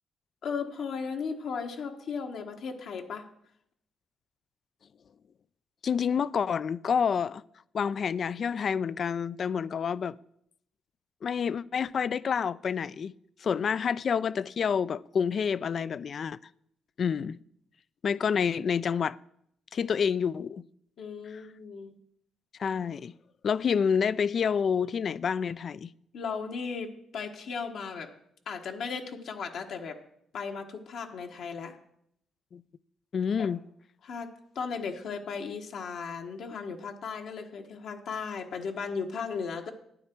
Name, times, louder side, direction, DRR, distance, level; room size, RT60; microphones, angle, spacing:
voice 1, 0.4-3.2 13.5-13.7 21.0-21.9 26.1-28.1 28.5-30.0 30.3-31.8 33.4-33.5 34.0-34.3 34.5-39.7, left 5 dB, 70° left, 1.2 m, -36 dB
voice 2, 5.8-7.4 7.7-10.1 11.2-13.1 13.4-16.4 17.0-17.4 18.0-19.2 19.7-20.6 21.3-21.4 22.6-23.1 23.4-25.9 32.5-32.6 33.1-33.6, left 7 dB, 50° left, 0.3 m, -28 dB
11.5 x 9.2 x 4.5 m
cardioid pair, 90°, 0 cm